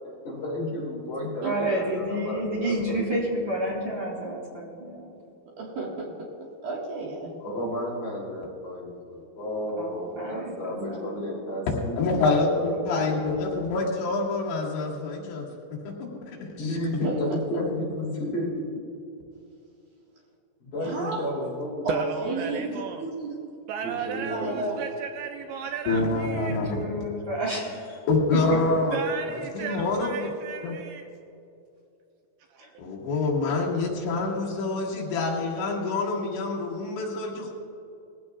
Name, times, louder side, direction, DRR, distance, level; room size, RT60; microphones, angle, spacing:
voice 1, 0.2-3.0 7.4-12.1 12.5-13.2 16.6-18.5 20.6-22.1 22.7-22.8 23.8-24.6, left 1 dB, 45° left, -5 dB, 4.1 m, -32 dB
voice 2, 1.4-5.2 9.8-11.4 26.6-28.0 28.3-28.4 32.6-32.7, right 1 dB, 35° right, -4 dB, 2.7 m, -30 dB
voice 3, 5.6-7.3 17.0-17.2 20.8-21.2 21.8-22.7 23.0-23.3 24.3-24.8, right 3 dB, 60° right, -4 dB, 3.0 m, -32 dB
voice 4, 12.0-15.5 15.9-16.8 25.9-26.8 28.1-29.0 29.3-30.3 30.6-30.8 32.8-37.5, left 3 dB, 75° left, -3 dB, 4.1 m, -26 dB
voice 5, 21.9-23.0 23.7-26.6 28.9-31.1 32.5-32.7, right 7 dB, 80° right, 4 dB, 2.6 m, -35 dB
20.5 x 15.5 x 2.4 m, 2.7 s
omnidirectional pair, 5.3 m